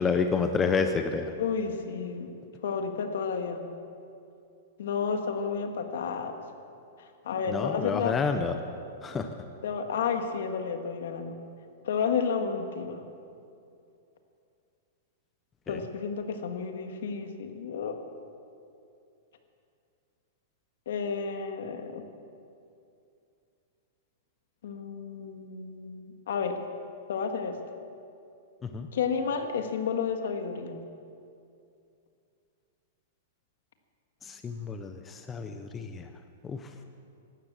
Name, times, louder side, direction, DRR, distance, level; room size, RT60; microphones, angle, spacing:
voice 1, 0.0-1.3 7.5-8.6 9.0-9.3 15.7-15.8 28.6-28.9 34.2-36.1 36.4-36.8, left 5 dB, 10° left, 7 dB, 0.5 m, -29 dB
voice 2, 1.4-2.4 2.6-3.7 4.8-6.3 7.0-8.2 9.6-11.4 11.8-13.0 15.7-18.1 20.8-22.0 24.6-26.6 27.1-27.6 28.9-30.8, left 6 dB, 65° left, 6 dB, 1.7 m, -31 dB
15.0 x 12.5 x 7.4 m, 2.5 s
supercardioid pair, 175°, 0 cm